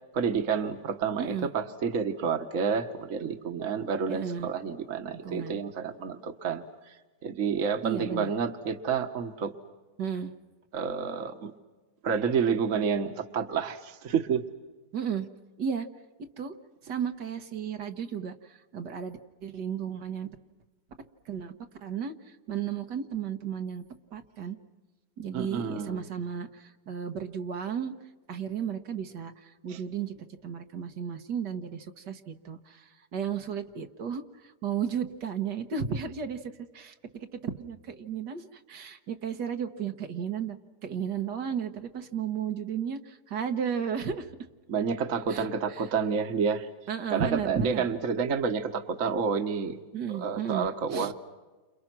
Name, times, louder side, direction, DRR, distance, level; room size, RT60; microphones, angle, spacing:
voice 1, 0.1-6.6 7.2-9.5 10.7-11.5 12.0-14.4 25.3-26.0 29.7-29.8 44.7-46.7 47.1-49.8 50.1-51.1, right 6 dB, 50° right, 8 dB, 1.6 m, -29 dB
voice 2, 1.2-1.5 4.1-4.5 5.1-5.6 7.8-8.3 10.0-10.3 14.9-15.3 15.6-15.9 16.4-16.5 16.8-20.3 21.3-21.5 21.8-23.8 24.1-24.6 25.2-27.9 28.3-40.6 40.8-44.3 45.3-45.9 46.9-47.9 49.9-51.1, right 7 dB, 80° right, 6 dB, 2.0 m, -34 dB
30.0 x 27.5 x 6.1 m, 1.2 s
omnidirectional pair, 1.8 m